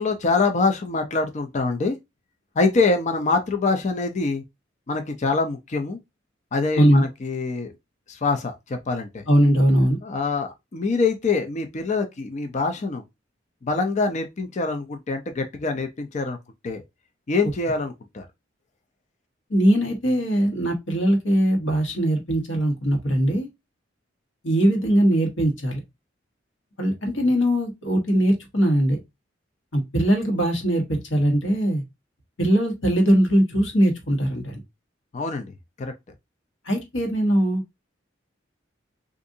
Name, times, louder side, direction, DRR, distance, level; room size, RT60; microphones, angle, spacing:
voice 1, 0.0-2.0 2.6-4.4 4.9-6.0 6.5-7.7 8.1-9.3 10.0-13.0 13.6-16.4 16.6-16.8 17.3-18.3 35.1-35.5 35.8-35.9, left 3 dB, 40° left, 0.5 m, -24 dB
voice 2, 9.3-10.0 19.5-23.5 24.4-25.8 26.8-29.0 29.7-31.8 32.4-34.6 36.7-37.6, equal, 75° left, 1.2 m, -20 dB
3.6 x 2.5 x 2.6 m
head